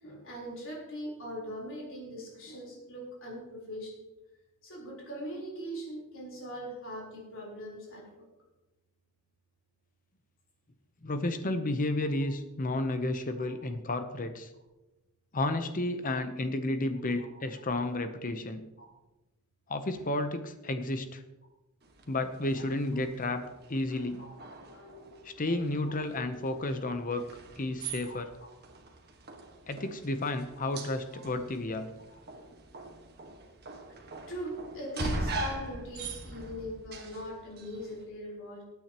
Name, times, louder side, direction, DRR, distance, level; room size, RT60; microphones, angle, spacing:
voice 1, 0.0-3.9 4.6-8.3 13.4-13.5 18.8-18.9 24.2-25.7 28.1-28.5 34.3-38.6, equal, 60° left, -3 dB, 3.9 m, -41 dB
voice 2, 11.0-14.5 15.3-18.6 19.7-21.2 22.1-24.2 25.2-27.3 27.6-28.3 29.7-31.9, left 2 dB, 40° left, 8 dB, 0.8 m, -32 dB
sound 1, 21.8-38.0, right 2 dB, 50° right, 1.5 m, -42 dB
20.0 x 9.2 x 3.0 m, 1.0 s
head